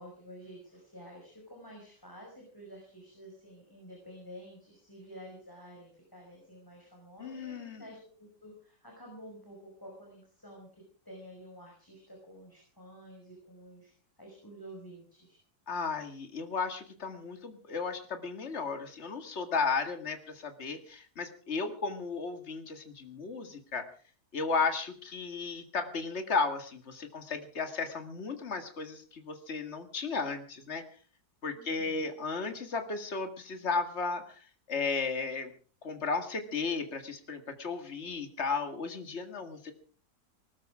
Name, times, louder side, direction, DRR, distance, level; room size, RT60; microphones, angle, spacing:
voice 1, 0.0-15.4 31.5-32.0, equal, 10° left, -1 dB, 5.6 m, -50 dB
voice 2, 7.2-7.8 15.7-23.9 24.3-30.8 31.4-35.5 35.8-39.7, left 4 dB, 40° left, 7 dB, 2.2 m, -34 dB
19.5 x 13.5 x 4.9 m, 0.42 s
omnidirectional pair, 1.8 m